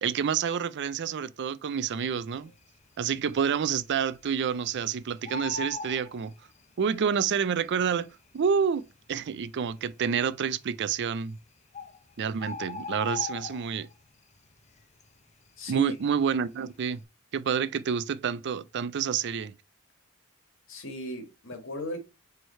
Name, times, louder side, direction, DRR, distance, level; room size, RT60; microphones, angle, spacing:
voice 1, 0.0-2.5 3.0-6.3 6.8-8.8 9.1-11.4 12.2-13.9 15.7-17.0 17.3-19.5, right 7 dB, 55° right, 0.4 m, -28 dB
Bird, 2.3-2.9 3.3-3.4 3.6-4.8 5.1-6.9 7.8-7.9 8.5-8.6 8.8-8.9 9.5-10.0 11.0-11.1 11.4-11.5 11.7-14.0 14.4-14.7 15.0-16.4 16.7-17.0, left 4 dB, 30° left, 0.6 m, -39 dB
voice 2, 15.6-16.0 20.7-22.0, right 1 dB, 60° left, 1.7 m, -35 dB
4.8 x 4.5 x 4.4 m
head